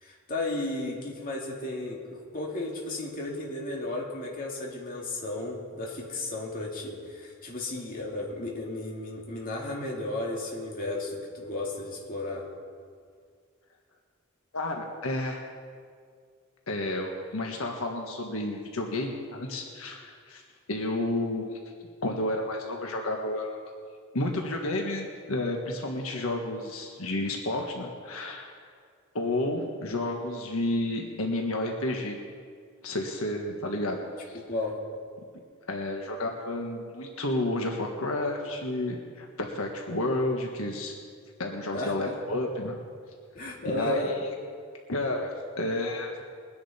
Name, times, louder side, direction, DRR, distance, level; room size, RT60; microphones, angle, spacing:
voice 1, 0.0-12.4 34.5-34.8 41.7-42.1 43.3-44.1, left 2 dB, 45° left, -2 dB, 2.5 m, -34 dB
voice 2, 14.5-15.4 16.7-20.4 20.7-21.5 22.0-23.6 24.1-28.5 29.1-32.2 32.8-34.0 34.3-34.4 35.7-40.9 41.4-42.7 43.6-44.0 44.9-46.1, left 1 dB, 85° left, 2 dB, 1.4 m, -31 dB
21.5 x 10.0 x 4.3 m, 2.1 s
head